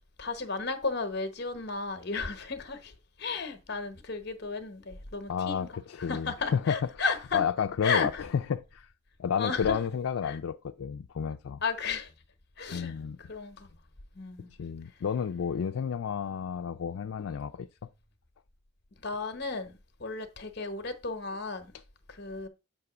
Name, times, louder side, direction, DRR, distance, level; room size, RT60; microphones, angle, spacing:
voice 1, 0.2-5.7 6.0-7.4 7.8-8.2 9.4-9.8 10.2-10.4 11.6-12.1 12.6-13.8 14.1-14.6 19.0-21.7 22.1-22.5, left 4 dB, 50° left, 1.0 m, -34 dB
voice 2, 5.3-6.8 7.3-8.1 8.5-8.9 9.2-11.6 12.7-13.2 14.6-17.7, left 7 dB, 80° left, 0.4 m, -31 dB
8.0 x 2.9 x 5.9 m
head